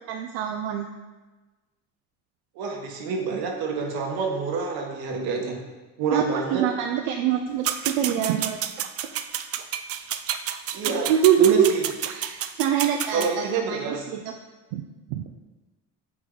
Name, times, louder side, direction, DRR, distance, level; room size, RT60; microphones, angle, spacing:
voice 1, 0.1-0.9 6.1-8.6 10.9-11.7 12.1-14.3 14.7-14.8 15.1-15.2, right 10 dB, 90° right, 4 dB, 0.5 m, -24 dB
voice 2, 2.5-5.6 6.0-6.6 10.7-11.1 11.4-11.8 13.1-14.0, right 4 dB, 75° right, 2 dB, 1.3 m, -27 dB
sound 1, 7.6-13.3, right 10 dB, 40° right, 0.4 m, -30 dB
7.9 x 3.7 x 3.8 m, 1.2 s
supercardioid pair, 90°, 37 cm